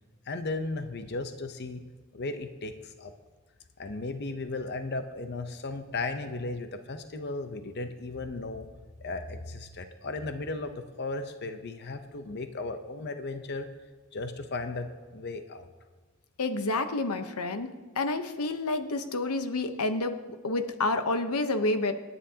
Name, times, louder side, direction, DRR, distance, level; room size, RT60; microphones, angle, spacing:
voice 1, 0.3-1.8 2.1-3.1 3.8-8.7 9.0-13.7 14.1-15.7, left 3 dB, 50° left, 7 dB, 0.8 m, -35 dB
voice 2, 16.4-17.7 18.0-21.9, left 2 dB, 90° left, 8 dB, 0.9 m, -29 dB
27.0 x 9.8 x 2.8 m, 1.4 s
head